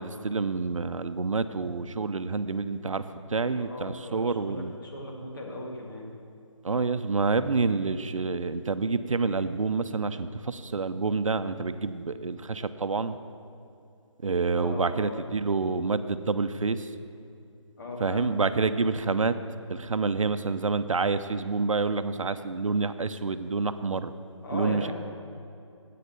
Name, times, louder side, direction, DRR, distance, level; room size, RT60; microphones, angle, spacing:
voice 1, 0.0-3.0 3.3-4.7 6.6-13.2 14.2-16.9 18.0-19.3 19.7-24.1 24.5-24.9, right 4 dB, 90° right, 11 dB, 0.6 m, -28 dB
voice 2, 3.6-6.1 14.6-15.2 17.8-18.4 24.4-24.9, left 2 dB, 40° left, -1 dB, 1.8 m, -37 dB
8.5 x 8.3 x 6.8 m, 2.6 s
figure-of-eight pair, 170°, 16 cm